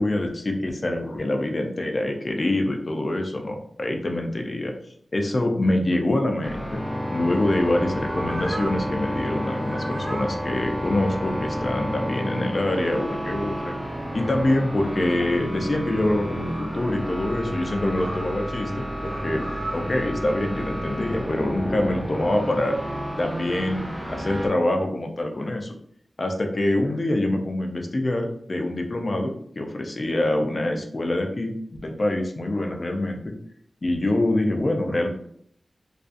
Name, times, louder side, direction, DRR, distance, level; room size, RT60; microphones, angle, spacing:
voice 1, 0.0-4.7 5.1-6.8 7.1-13.7 14.1-18.7 19.2-19.4 19.7-22.8 23.2-25.7 26.2-31.6 31.8-33.3 33.8-35.1, left 1 dB, 40° left, 3 dB, 0.4 m, -25 dB
sound 1, 6.4-24.5, equal, 20° right, 0.4 m, -31 dB
sound 2, 7.9-8.9 9.3-10.4 12.3-13.2 14.1-14.2 14.6-15.4 16.1-16.9 17.6-18.3 19.0-19.9, right 1 dB, 80° right, 0.8 m, -38 dB
2.4 x 2.3 x 2.5 m, 0.67 s
wide cardioid pair, 90°, 0 cm